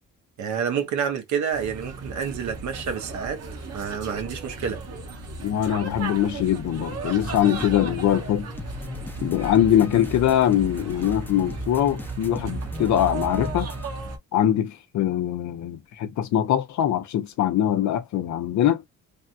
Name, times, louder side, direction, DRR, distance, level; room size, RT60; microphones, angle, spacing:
voice 1, 0.4-3.4 3.7-4.8, right 7 dB, 70° right, 1.1 m, -28 dB
sound 1, 1.5-14.2, right 3 dB, 55° right, 1.3 m, -35 dB
voice 2, 5.4-8.5 9.2-13.7 14.3-18.8, left 11 dB, 70° left, 0.7 m, -22 dB
sound 2, 7.2-13.9, right 1 dB, 5° left, 0.7 m, -37 dB
3.4 x 2.2 x 2.7 m
cardioid pair, 90°, 30 cm